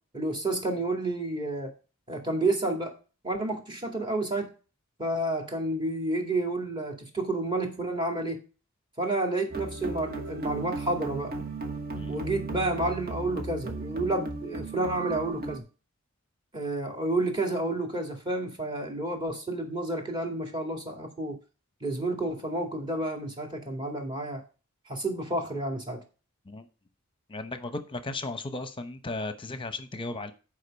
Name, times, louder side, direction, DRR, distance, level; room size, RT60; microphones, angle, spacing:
voice 1, 0.1-1.7 2.1-3.0 3.2-4.5 5.0-8.4 9.0-11.4 12.1-15.6 16.5-21.4 21.8-24.4 24.9-26.0, right 2 dB, 20° right, 2 dB, 2.3 m, -30 dB
sound 1, 9.5-15.6, right 3 dB, 45° right, 1.2 m, -36 dB
voice 2, 27.3-30.3, left 2 dB, 25° left, 9 dB, 0.9 m, -35 dB
10.0 x 5.1 x 5.2 m, 0.34 s
head